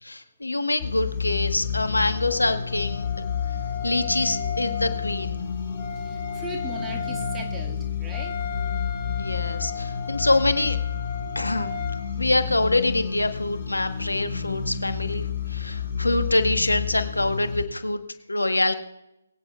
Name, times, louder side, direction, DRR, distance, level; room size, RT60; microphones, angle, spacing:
voice 1, 0.0-3.1 3.8-5.4 9.2-10.8 11.3-11.8 12.2-18.0 18.3-18.7, left 2 dB, 90° left, 9 dB, 1.3 m, -25 dB
sound 1, 0.8-17.6, left 7 dB, 35° left, 3.8 m, -30 dB
Wind instrument woodwind instrument, 2.0-12.0, left 6 dB, 15° left, 2.2 m, -36 dB
voice 2, 6.0-8.3, right 2 dB, 10° right, 0 dB, 1.9 m, -38 dB
23.0 x 9.0 x 2.4 m, 0.89 s
figure-of-eight pair, 145°, 0 cm